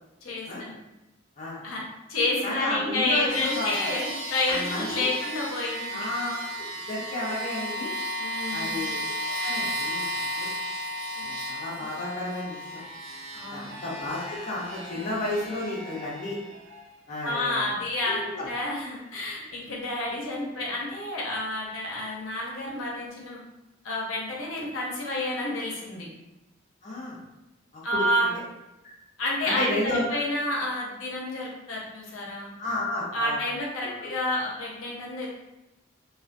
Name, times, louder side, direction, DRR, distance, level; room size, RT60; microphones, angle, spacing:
voice 1, 0.2-0.7 1.6-1.8 2.1-6.1 8.2-8.8 11.2-11.3 13.3-13.7 17.2-23.4 23.8-26.1 27.8-28.3 29.2-32.5 33.1-35.3, left 1 dB, 80° left, -3 dB, 0.6 m, -29 dB
voice 2, 2.4-3.7 4.5-5.1 5.9-6.3 6.9-7.9 8.5-9.0 9.4-10.5 11.2-12.8 13.5-16.4 17.1-17.6 18.1-18.5 26.8-27.2 27.7-28.3 28.8-28.9 29.5-30.2 32.6-33.4 33.8-34.1, left 2 dB, 35° left, -6 dB, 0.5 m, -32 dB
sound 1, 3.3-16.9, equal, 75° right, 0.5 m, -34 dB
2.2 x 2.2 x 2.4 m, 0.96 s
head